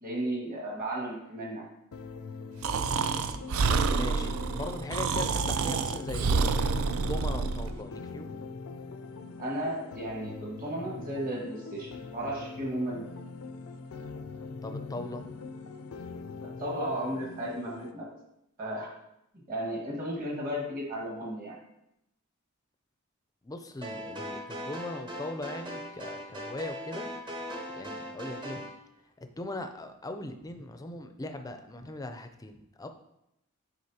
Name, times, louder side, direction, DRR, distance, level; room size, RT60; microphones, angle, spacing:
voice 1, 0.0-1.6 9.4-13.0 16.4-18.1 18.6-18.9 19.5-21.6, right 1 dB, 40° right, -3 dB, 1.8 m, -34 dB
sound 1, 1.9-17.9, left 4 dB, 80° left, 0.5 m, -42 dB
Breathing, 2.6-7.7, right 4 dB, 70° right, 0.4 m, -28 dB
voice 2, 3.7-6.4 7.0-8.4 14.6-15.4 23.4-27.1 27.8-28.6 29.2-32.9, left 2 dB, 15° left, 7 dB, 0.4 m, -39 dB
sound 2, 23.8-28.7, equal, 20° right, 0.7 m, -39 dB
9.7 x 4.0 x 2.8 m, 0.83 s
head